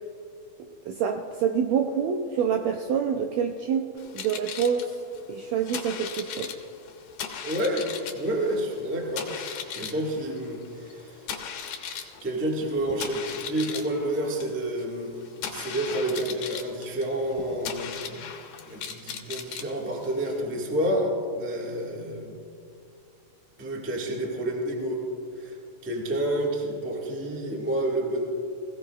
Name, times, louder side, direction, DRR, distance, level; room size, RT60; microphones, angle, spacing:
voice 1, 0.8-3.9 4.1-4.9 5.3-6.5, right 7 dB, 80° right, 4 dB, 1.6 m, -26 dB
sound 1, 4.0-20.4, left 7 dB, 75° left, 2.5 m, -38 dB
voice 2, 7.4-11.4 12.2-18.3 18.7-22.4 23.6-25.0 25.3-25.6 25.8-28.2, right 1 dB, 10° right, -2 dB, 0.5 m, -29 dB
21.0 x 16.5 x 2.4 m, 2.5 s
omnidirectional pair, 3.8 m